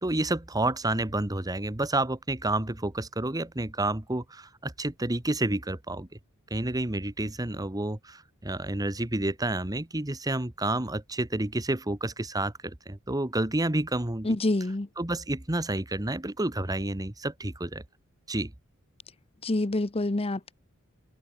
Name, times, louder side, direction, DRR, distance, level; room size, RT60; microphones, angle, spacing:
voice 1, 0.0-6.1 6.5-14.4 15.0-17.8 18.3-18.5, right 2 dB, 20° right, 1.2 m, -30 dB
voice 2, 14.2-14.9 19.4-20.5, left 2 dB, 30° left, 0.8 m, -27 dB
head